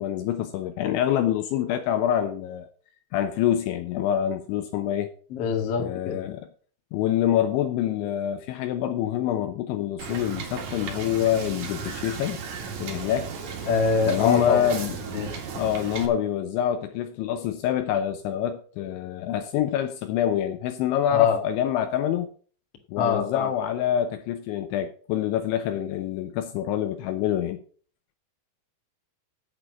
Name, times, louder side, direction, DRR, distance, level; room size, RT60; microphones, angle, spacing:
voice 1, 0.0-2.7 3.1-5.1 5.8-6.5 6.9-12.4 12.8-13.3 14.1-22.3 22.9-27.6, left 10 dB, 80° left, 2.8 m, -26 dB
voice 2, 5.3-6.2 13.7-14.7 15.1-15.3 21.1-21.4 23.0-23.5, left 5 dB, 50° left, 1.8 m, -24 dB
Wind / Boat Water vehicle, 10.0-16.1, right 6 dB, 55° right, 2.2 m, -35 dB
8.6 x 7.7 x 7.1 m
omnidirectional pair, 5.9 m